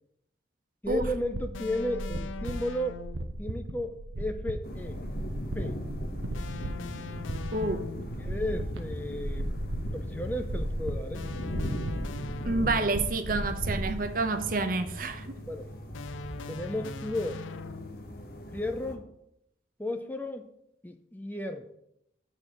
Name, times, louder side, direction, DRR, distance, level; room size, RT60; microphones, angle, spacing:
voice 1, 0.8-3.0 3.4-5.0 5.5-5.7 8.2-9.5 9.9-11.3 15.5-15.7 16.5-17.4 18.5-19.1 19.8-20.5 20.8-21.7, left 1 dB, 10° left, 0.4 m, -34 dB
sound 1, 0.8-13.9, right 1 dB, 85° right, 0.8 m, -36 dB
sound 2, 1.5-3.4 6.3-8.2 11.1-13.1 15.9-18.1, left 4 dB, 90° left, 0.4 m, -42 dB
sound 3, 4.6-19.0, equal, 50° left, 0.9 m, -39 dB
voice 2, 7.5-7.9 12.4-15.4, right 3 dB, 45° right, 0.6 m, -29 dB
7.3 x 4.2 x 6.6 m
head